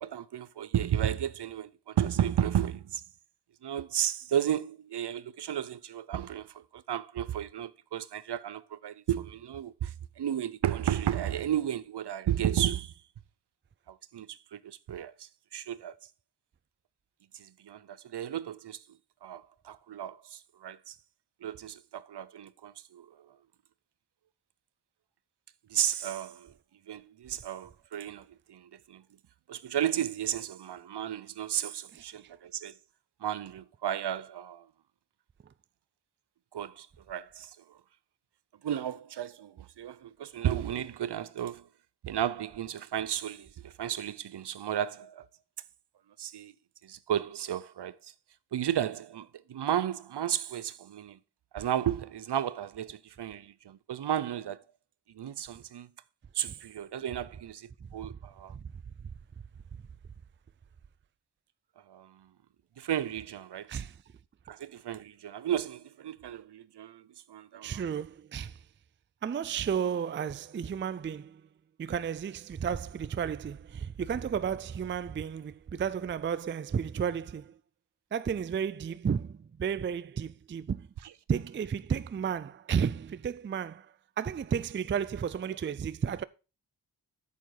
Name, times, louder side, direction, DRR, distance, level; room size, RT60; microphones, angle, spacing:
voice 1, 0.0-3.0 3.6-12.9 13.9-15.9 17.3-18.8 19.2-21.0 21.4-23.3 25.7-26.5 26.9-29.0 29.5-32.8 33.2-34.7 36.5-37.8 38.6-41.7 42.0-45.3 46.2-46.5 46.8-48.1 48.5-51.2 51.5-54.6 55.1-55.9 56.3-58.5 61.9-62.3 62.8-63.8 64.5-67.8, right 10 dB, 70° right, 0.7 m, -33 dB
voice 2, 67.6-68.6 69.2-71.4 71.8-77.6 78.1-80.9 81.3-86.2, right 7 dB, 30° right, 0.4 m, -33 dB
9.0 x 7.4 x 3.9 m
wide cardioid pair, 140°, 42 cm